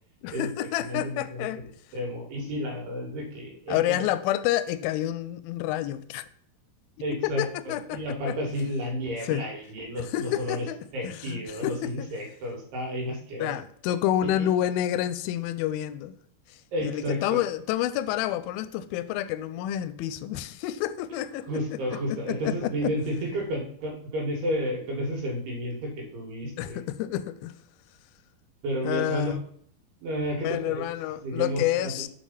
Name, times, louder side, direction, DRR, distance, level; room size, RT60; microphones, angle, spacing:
voice 1, 0.2-1.6 3.7-6.2 7.2-8.0 8.3-8.4 9.3-9.4 10.0-10.8 11.0-12.1 13.4-16.1 16.8-21.5 21.9-22.9 26.6-27.5 28.9-29.4 30.4-32.1, left 12 dB, 80° left, 2.3 m, -29 dB
voice 2, 0.8-1.7 1.9-4.0 7.0-10.6 10.9-13.5 14.2-14.5 16.7-17.4 21.5-26.8 28.6-29.3 30.0-30.9 31.2-32.1, equal, 85° right, 4.0 m, -32 dB
7.3 x 4.9 x 5.6 m
omnidirectional pair, 4.5 m